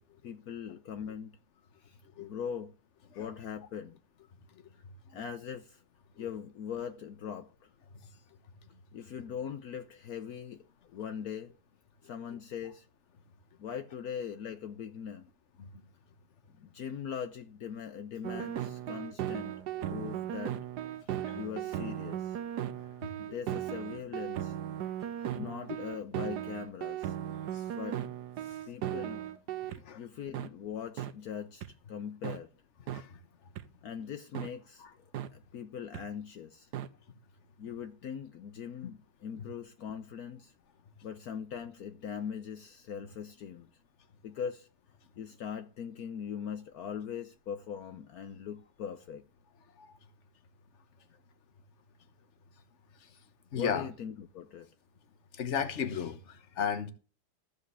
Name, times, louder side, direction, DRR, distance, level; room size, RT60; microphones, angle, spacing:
voice 1, 0.2-1.4 1.8-2.7 3.2-4.0 4.7-4.8 5.1-5.8 6.2-7.7 8.9-11.5 12.0-12.9 13.6-15.3 16.5-20.6 21.3-22.4 23.2-24.6 25.2-27.2 27.7-28.0 28.7-29.2 30.0-32.5 33.8-34.8 35.3-36.7 37.6-40.5 41.0-43.7 44.2-44.7 45.2-49.2 53.5-54.7, left 8 dB, 65° left, 1.3 m, -41 dB
sound 1, 18.2-29.8 30.3-30.5 31.0-31.1 31.6-31.7 32.2-32.4 32.9-33.0 33.6-33.7 34.3-34.5 35.1-35.3 35.9-36.0 36.7-36.9, right 11 dB, 80° right, 1.4 m, -37 dB
voice 2, 53.5-53.9 55.3-56.9, left 7 dB, 45° left, 1.4 m, -35 dB
14.5 x 5.2 x 8.2 m
omnidirectional pair, 1.8 m